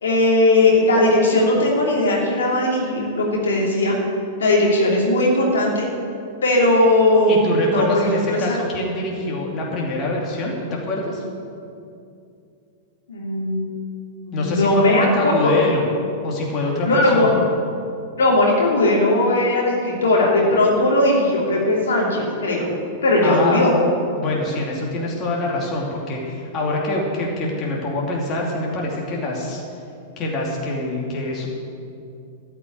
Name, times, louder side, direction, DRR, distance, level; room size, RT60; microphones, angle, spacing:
voice 1, 0.0-4.0 4.4-5.9 6.4-8.6 13.1-13.7 14.2-15.3 16.8-17.3 18.2-22.7 23.0-23.8, left 1 dB, 70° left, -3 dB, 2.9 m, -18 dB
voice 2, 7.3-11.2 14.3-15.8 16.2-17.4 23.2-23.6 24.2-29.6 30.2-31.5, left 2 dB, 35° left, -3 dB, 2.7 m, -25 dB
14.0 x 6.0 x 9.3 m, 2.5 s
figure-of-eight pair, 95°, 0 cm